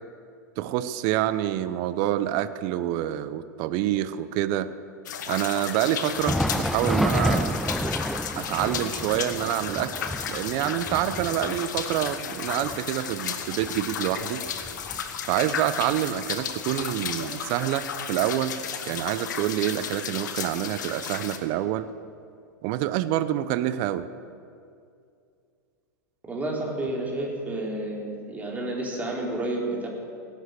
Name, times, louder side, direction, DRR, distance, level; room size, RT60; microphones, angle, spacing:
voice 1, 0.6-4.7 5.3-7.6 8.4-9.9 10.3-14.4 15.3-18.6 18.9-21.9 22.6-24.1, right 12 dB, 50° right, 13 dB, 0.8 m, -27 dB
sound 1, 5.1-21.4, left 7 dB, 75° left, 1.4 m, -33 dB
Thunder, 6.0-15.5 15.8-16.0 16.7-16.8 17.8-17.9, equal, ahead, 0.4 m, -31 dB
voice 2, 26.3-29.9, right 1 dB, 15° right, -2 dB, 4.0 m, -30 dB
17.0 x 11.5 x 6.7 m, 2.4 s
hypercardioid pair, 105°, 10 cm